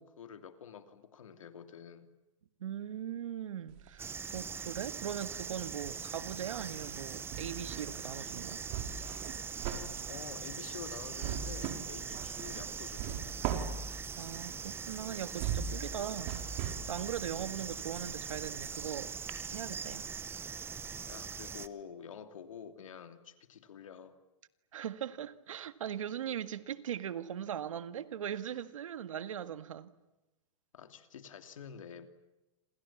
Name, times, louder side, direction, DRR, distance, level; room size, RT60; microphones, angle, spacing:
voice 1, 0.0-2.1 10.1-13.5 17.4-17.5 21.0-24.2 30.7-32.1, left 7 dB, 90° left, 2.9 m, -48 dB
voice 2, 2.6-8.6 14.2-16.4 16.9-19.2 19.5-20.1 24.7-29.9, right 9 dB, 85° right, 1.8 m, -40 dB
sound 1, 3.7-4.8 5.1-18.9 19.3-19.4, right 8 dB, 45° right, 5.0 m, -41 dB
sound 2, 4.0-21.7, right 6 dB, 15° right, 1.0 m, -42 dB
27.5 x 27.5 x 7.3 m
hypercardioid pair, 135°, 16 cm